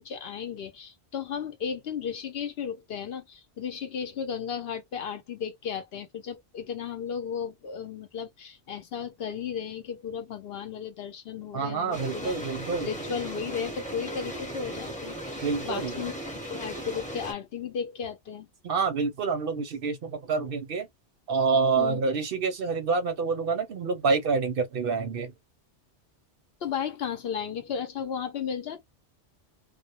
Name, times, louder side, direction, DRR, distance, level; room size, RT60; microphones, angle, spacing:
voice 1, 0.0-12.4 12.8-16.1 16.5-18.5 21.8-22.0 26.6-28.8, left 7 dB, 65° left, 0.8 m, -34 dB
voice 2, 11.5-12.9 15.4-15.9 18.6-20.9 21.3-25.3, right 4 dB, 60° right, 0.7 m, -27 dB
sound 1, 11.9-17.3, right 1 dB, 5° left, 0.8 m, -37 dB
2.2 x 2.1 x 2.8 m
omnidirectional pair, 1.2 m